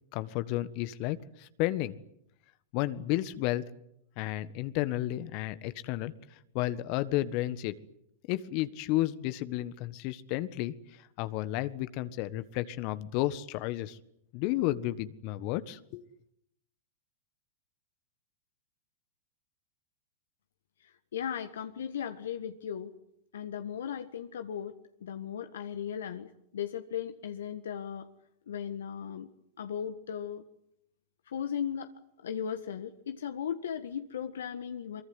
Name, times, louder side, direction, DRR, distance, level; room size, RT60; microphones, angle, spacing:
voice 1, 0.1-2.0 2.7-3.6 4.2-6.1 6.5-7.8 8.3-10.7 11.2-14.0 14.3-16.1, left 16 dB, 50° left, 13 dB, 1.5 m, -32 dB
voice 2, 21.1-22.9 23.3-28.1 28.5-29.3 29.6-30.4 31.3-31.9 32.2-35.0, left 8 dB, 75° left, 7 dB, 1.6 m, -37 dB
24.5 x 23.5 x 9.7 m, 0.76 s
hypercardioid pair, 100°, 0 cm